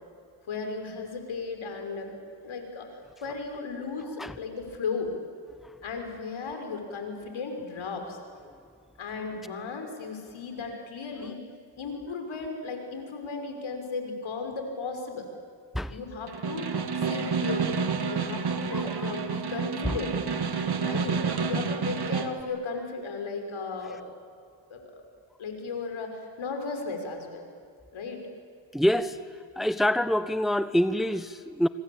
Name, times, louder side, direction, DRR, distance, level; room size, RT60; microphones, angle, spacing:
voice 1, 0.5-2.2 2.4-5.1 5.8-8.2 9.0-11.4 11.8-15.3 15.9-17.8 18.1-20.2 20.8-21.2 21.5-24.0 24.7-25.0 25.4-27.5 27.9-28.3, left 4 dB, 70° left, 4 dB, 6.0 m, -35 dB
Snare drum, 16.3-22.4, right 5 dB, 50° right, 2.4 m, -29 dB
voice 2, 18.7-19.1 19.8-19.9 20.7-20.8 21.3-21.5 28.7-29.2 29.6-31.7, equal, ahead, 12 dB, 1.2 m, -26 dB
26.0 x 25.0 x 8.8 m, 2.3 s
supercardioid pair, 55°, 50 cm